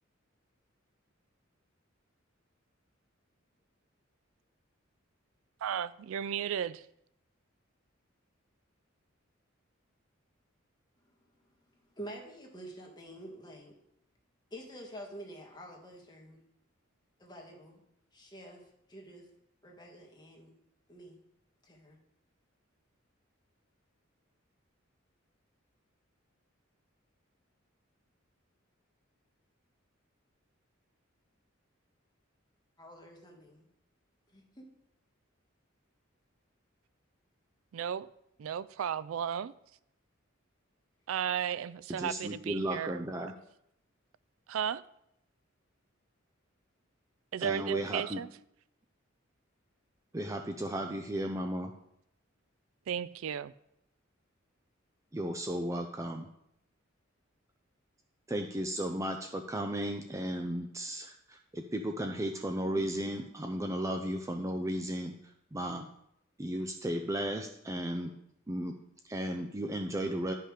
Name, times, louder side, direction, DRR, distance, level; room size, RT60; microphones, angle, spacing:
voice 1, 5.6-6.8 37.7-38.1 38.4-39.5 41.1-43.0 44.5-44.8 47.3-48.3 52.9-53.5, right 8 dB, 80° right, 0.3 m, -34 dB
voice 2, 11.9-13.7 14.5-16.4 17.2-17.8 18.1-18.6 18.9-19.3 19.6-20.5 20.9-21.2 21.6-22.0 32.8-33.7 34.3-34.7, right 1 dB, 20° left, 1.9 m, -48 dB
voice 3, 41.9-43.3 47.4-48.2 50.1-51.7 55.1-56.3 58.3-65.1 65.5-65.9 66.4-68.1 68.5-68.8 69.0-70.3, right 1 dB, 15° right, 0.5 m, -34 dB
11.5 x 5.6 x 4.9 m
head